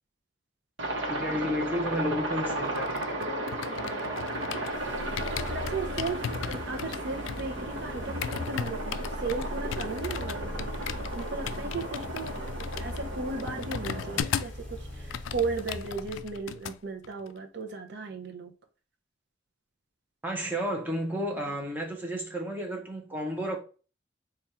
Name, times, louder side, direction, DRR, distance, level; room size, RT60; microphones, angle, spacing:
Aircraft, 0.8-14.2, right 1 dB, 75° right, 1.0 m, -35 dB
voice 1, 1.1-3.1 6.3-6.5 20.2-23.6, equal, 10° right, 0.8 m, -32 dB
sound 1, 2.5-4.8 5.2-14.6 14.9-16.8 17.0-17.3, left 9 dB, 85° left, 0.3 m, -37 dB
voice 2, 3.7-4.2 5.5-10.9 11.1-18.5, right 4 dB, 60° right, 0.6 m, -36 dB
sound 2, 4.7-16.6, left 1 dB, 10° left, 1.7 m, -40 dB
3.3 x 2.4 x 4.2 m
head